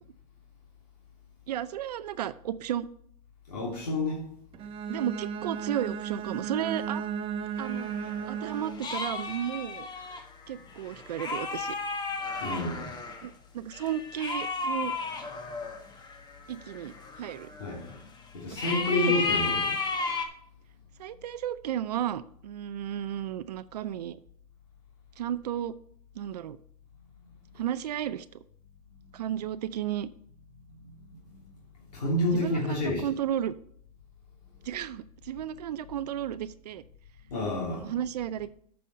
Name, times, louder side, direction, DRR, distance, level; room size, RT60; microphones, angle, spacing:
voice 1, 1.5-2.9 4.9-7.0 7.6-7.9 8.3-9.9 10.5-11.8 13.2-14.9 16.5-17.5 18.6-19.4 21.0-24.2 25.2-25.7 26.2-26.6 27.6-28.2 29.1-30.1 32.3-33.6 34.6-36.8 37.7-38.5, right 10 dB, 85° right, 13 dB, 0.5 m, -33 dB
voice 2, 3.5-4.2 12.4-12.9 17.6-17.9 18.3-19.7 29.1-29.4 30.8-30.9 31.8-33.1 37.3-37.9, left 2 dB, 85° left, -4 dB, 3.0 m, -29 dB
Bowed string instrument, 4.5-9.0, right 7 dB, 30° right, 0.7 m, -35 dB
sound 1, 7.6-13.3 13.7-18.0 18.6-20.3, left 4 dB, 20° left, 1.2 m, -34 dB
8.5 x 5.5 x 5.4 m, 0.62 s
hypercardioid pair, 120°, 20 cm